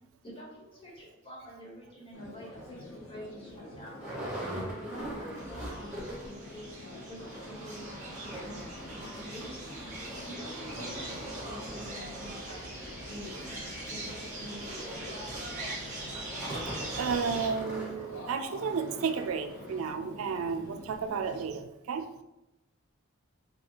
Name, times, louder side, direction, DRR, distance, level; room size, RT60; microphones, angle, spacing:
voice 1, 0.2-4.1 4.5-9.8 10.2-15.2, equal, 25° left, -4 dB, 1.3 m, -47 dB
sound 1, 2.1-21.5, left 1 dB, 80° left, 0.9 m, -47 dB
sound 2, 2.5-2.7 3.2-3.3 3.5-6.4 6.7-6.8 7.1-19.9 20.5-20.6 20.9-21.0, right 1 dB, 5° right, 1.3 m, -42 dB
sound 3, 5.4-17.5, right 2 dB, 40° right, 1.2 m, -42 dB
voice 2, 17.0-22.1, right 5 dB, 90° right, 8 dB, 0.4 m, -32 dB
4.6 x 2.3 x 2.9 m, 0.94 s
head